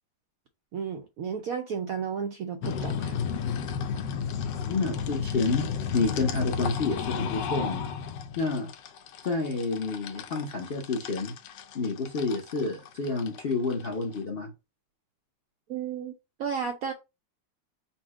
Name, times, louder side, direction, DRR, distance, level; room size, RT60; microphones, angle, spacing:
voice 1, 0.7-3.2 15.7-16.9, right 6 dB, 70° right, 0.8 m, -33 dB
sound 1, 2.6-14.2, left 7 dB, 80° left, 1.3 m, -33 dB
voice 2, 4.7-5.7 5.9-7.9 8.4-8.7 9.2-11.3 11.7-14.5, left 3 dB, 45° left, 0.8 m, -29 dB
4.2 x 2.2 x 4.6 m
omnidirectional pair, 2.0 m